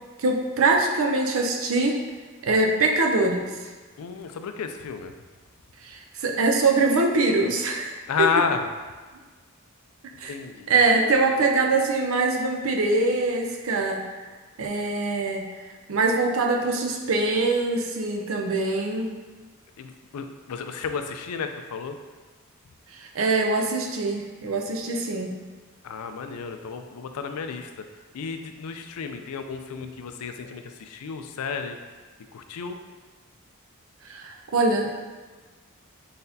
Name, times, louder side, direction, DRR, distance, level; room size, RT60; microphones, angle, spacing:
voice 1, 0.2-2.0 2.4-3.5 5.8-8.3 10.2-10.3 10.7-14.0 14.6-15.6 15.9-19.1 22.9-25.4 34.1-34.9, right 3 dB, 65° right, 2 dB, 0.5 m, -23 dB
voice 2, 4.0-5.1 8.1-8.6 10.3-10.7 19.8-22.0 25.8-27.7 28.1-31.8 32.3-32.8, left 5 dB, 85° left, 7 dB, 0.4 m, -31 dB
4.1 x 4.0 x 2.7 m, 1.4 s
head